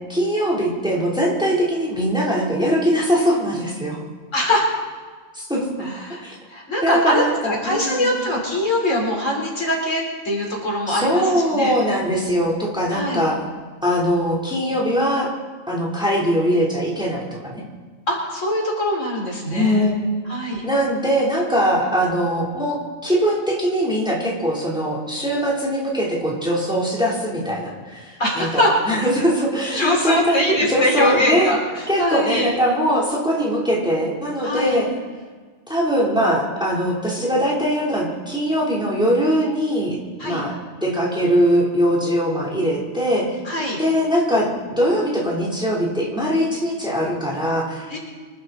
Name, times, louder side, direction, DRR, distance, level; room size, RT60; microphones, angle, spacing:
voice 1, 0.1-4.0 5.3-5.9 6.2-6.4 6.8-8.1 10.9-13.4 13.8-15.3 15.7-17.6 19.5-31.5 31.9-34.9 35.7-40.0 40.2-40.6 40.8-43.4 43.8-48.0, equal, 5° right, -4 dB, 3.4 m, -21 dB
voice 2, 4.3-4.7 5.8-11.7 12.9-13.3 18.1-19.9 20.3-20.6 28.2-28.7 29.7-31.6 32.0-32.5 34.4-34.8 40.2-40.4 43.4-43.8 47.9-48.0, left 1 dB, 75° left, -2 dB, 4.3 m, -22 dB
25.5 x 12.0 x 4.1 m, 1.5 s
omnidirectional pair, 1.3 m